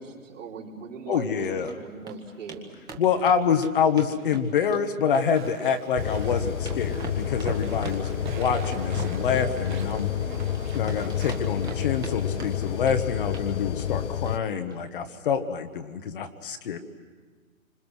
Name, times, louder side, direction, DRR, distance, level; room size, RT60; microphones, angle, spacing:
voice 1, 0.0-2.8, right 4 dB, 60° right, -3 dB, 4.5 m, -39 dB
voice 2, 1.1-1.7 3.0-8.1 8.4-10.1 10.7-16.8, left 7 dB, 40° left, 8 dB, 1.4 m, -26 dB
sound 1, 1.2-1.7 2.1-2.2 2.5-2.6 2.9-4.8 5.1-5.8 6.1-10.6 10.9-12.1 12.4-13.0 13.3-13.5 13.8-14.0 14.3-14.4 14.7-14.8, right 4 dB, 10° right, 1.7 m, -41 dB
Walk footsteps / Chatter / Squeak, 5.1-12.8, right 8 dB, 35° right, 1.4 m, -43 dB
sound 2, 6.0-14.4, left 10 dB, 60° left, 0.7 m, -29 dB
27.0 x 26.5 x 6.4 m, 1.4 s
figure-of-eight pair, 135°, 42 cm